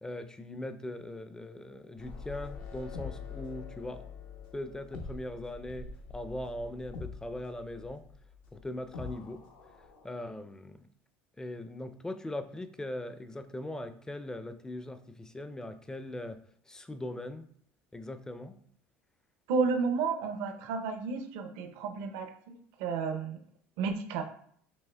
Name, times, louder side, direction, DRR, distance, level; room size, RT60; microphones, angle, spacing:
voice 1, 0.0-4.1 4.5-8.1 8.5-9.4 10.0-10.9 11.4-17.5 17.9-18.6, left 1 dB, 10° left, 10 dB, 0.4 m, -40 dB
sound 1, 2.0-10.1, left 5 dB, 80° left, 0.9 m, -45 dB
voice 2, 19.5-23.4 23.8-24.2, right 5 dB, 75° right, 5 dB, 0.6 m, -32 dB
6.1 x 3.1 x 2.2 m, 0.63 s
supercardioid pair, 95°, 6 cm